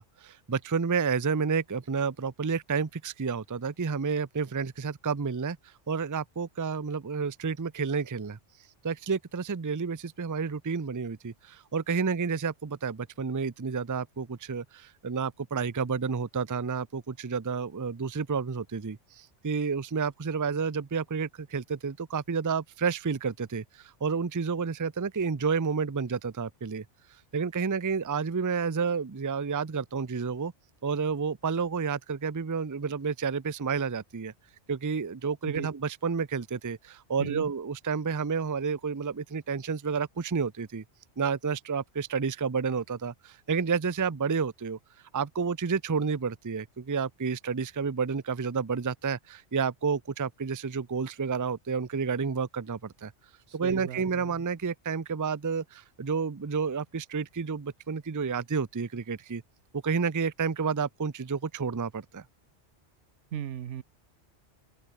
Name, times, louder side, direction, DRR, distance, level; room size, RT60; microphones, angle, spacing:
voice 1, 0.0-8.4 8.8-26.8 27.3-30.5 30.8-34.3 34.7-40.8 41.2-44.8 45.1-53.1 53.5-59.4 59.7-62.2, right 5 dB, 25° right, 0.5 m, -30 dB
voice 2, 53.6-54.3 63.3-63.8, right 10 dB, 80° right, 1.1 m, -36 dB
open air
omnidirectional pair, 1.2 m